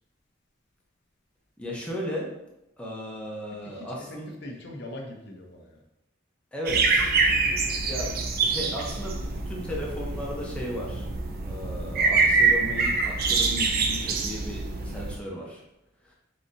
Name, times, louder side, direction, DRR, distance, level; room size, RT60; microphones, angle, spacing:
voice 1, 1.6-2.3 2.8-4.3 6.5-7.3 7.8-11.1 11.4-15.6 16.0-16.1, left 1 dB, 5° left, -3 dB, 0.9 m, -35 dB
voice 2, 3.6-5.8, left 1 dB, 60° left, 1 dB, 0.7 m, -41 dB
sound 1, 6.7-15.2, right 4 dB, 50° right, 0.5 m, -25 dB
4.1 x 3.8 x 2.7 m, 0.87 s
head